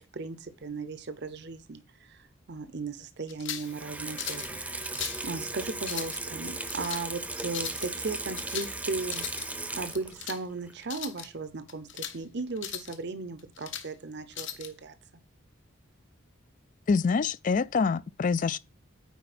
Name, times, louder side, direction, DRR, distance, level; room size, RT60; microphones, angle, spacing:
voice 1, 0.0-4.6 5.2-9.5 9.7-14.9, right 3 dB, 55° right, 0.8 m, -37 dB
sound 1, 3.3-3.7 4.2-4.5 4.8-5.2 5.8-6.2 6.7-7.0 7.5-7.9 8.4-8.8 9.0-9.5 9.9-10.4 10.8-11.3 11.7-12.2 12.6-13.0 13.4-13.9 14.3-14.7, left 10 dB, 60° left, 1.0 m, -38 dB
Water tap faucet / Sink (filling or washing), 3.6-10.3 10.7-10.8, right 2 dB, 5° right, 0.7 m, -36 dB
voice 2, 16.9-18.6, left 5 dB, 40° left, 0.3 m, -26 dB
9.3 x 4.3 x 4.3 m
head